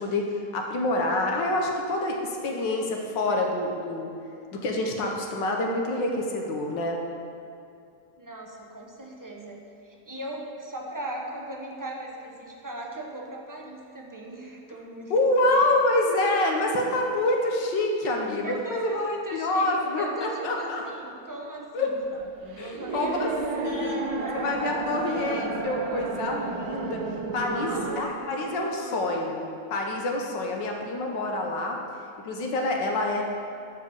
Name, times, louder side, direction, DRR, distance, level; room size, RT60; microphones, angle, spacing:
voice 1, 0.0-4.1 4.5-7.0 15.1-20.8 21.7-21.9 22.6-23.3 23.6-27.0 27.3-31.8 32.2-33.2, left 2 dB, 90° left, 1 dB, 1.8 m, -27 dB
voice 2, 8.2-15.1 15.6-15.8 18.4-24.5 27.4-28.3 28.6-29.2, right 1 dB, 15° right, -1 dB, 0.9 m, -38 dB
sound 1, 22.0-28.0, right 4 dB, 85° right, 1.5 m, -32 dB
13.0 x 4.9 x 7.1 m, 2.5 s
omnidirectional pair, 1.9 m